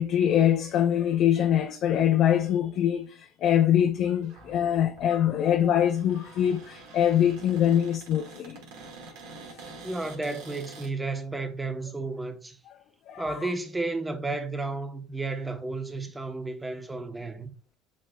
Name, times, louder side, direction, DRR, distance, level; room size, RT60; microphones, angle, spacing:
voice 1, 0.0-8.6 13.1-13.4, left 10 dB, 60° left, 0.6 m, -24 dB
Cupboard open or close, 4.2-10.9, right 3 dB, 75° right, 1.5 m, -47 dB
voice 2, 9.8-12.6 13.2-17.5, right 3 dB, 15° right, 0.9 m, -32 dB
7.3 x 3.2 x 2.3 m
hypercardioid pair, 75°, 0 cm